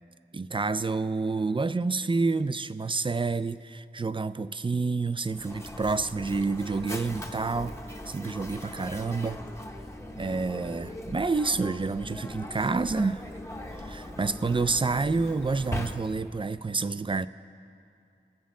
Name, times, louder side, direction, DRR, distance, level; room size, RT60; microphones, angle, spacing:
voice 1, 0.3-7.7 8.1-9.4 10.2-13.2 13.8-17.3, right 4 dB, 25° right, 14 dB, 0.3 m, -28 dB
Mechanisms, 5.3-16.4, left 1 dB, 15° left, 0.8 m, -40 dB
20.5 x 7.3 x 3.7 m, 2.6 s
wide cardioid pair, 50°, 19 cm